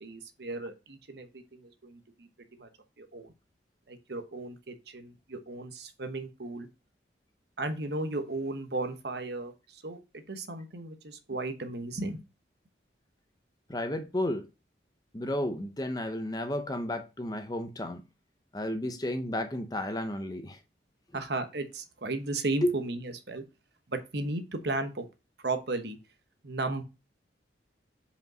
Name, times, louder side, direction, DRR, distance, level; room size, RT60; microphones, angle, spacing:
voice 1, 0.0-2.3 2.6-2.7 3.0-3.3 3.9-6.7 7.6-12.2 21.1-23.4 23.9-25.0 25.4-26.0 26.4-26.8, right 2 dB, 65° right, 1.1 m, -35 dB
voice 2, 13.7-14.5 15.1-18.0 18.5-20.6 22.6-22.7, left 1 dB, 20° left, 0.7 m, -32 dB
5.3 x 5.2 x 6.0 m
head